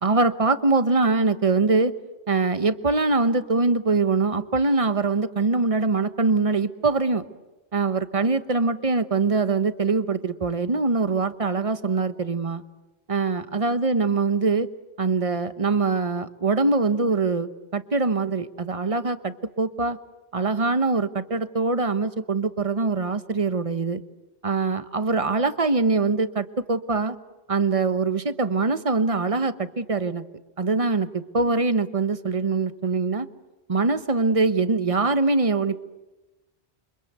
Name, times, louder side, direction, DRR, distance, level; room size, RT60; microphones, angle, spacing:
voice 1, 0.0-1.9 2.3-7.2 7.7-12.6 13.1-14.7 15.0-20.0 20.3-24.0 24.4-27.2 27.5-30.2 30.6-33.3 33.7-35.8, right 3 dB, 35° right, 12 dB, 1.1 m, -23 dB
28.5 x 25.5 x 8.2 m, 1.1 s
omnidirectional pair, 1.1 m